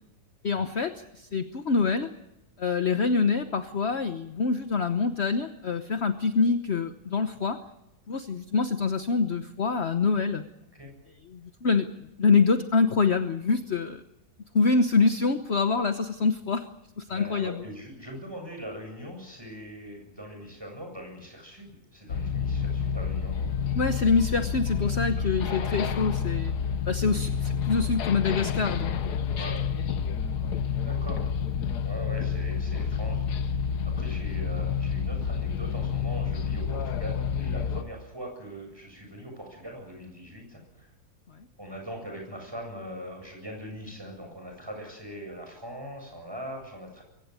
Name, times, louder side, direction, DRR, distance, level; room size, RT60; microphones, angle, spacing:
voice 1, 0.4-2.1 2.6-7.6 8.1-10.4 11.3-11.9 12.2-14.0 14.5-16.6 17.0-17.6 23.7-26.5 26.9-29.3, left 4 dB, 45° left, 8 dB, 1.2 m, -25 dB
voice 2, 17.1-23.5 25.1-25.2 25.6-25.7 27.1-27.2 29.4-29.6 30.8-31.3 31.8-33.6 33.9-40.9 41.6-47.0, equal, 15° right, 2 dB, 7.8 m, -41 dB
sound 1, 22.1-37.8, left 7 dB, 90° left, 1.6 m, -29 dB
23.0 x 17.0 x 9.6 m, 0.89 s
omnidirectional pair, 1.7 m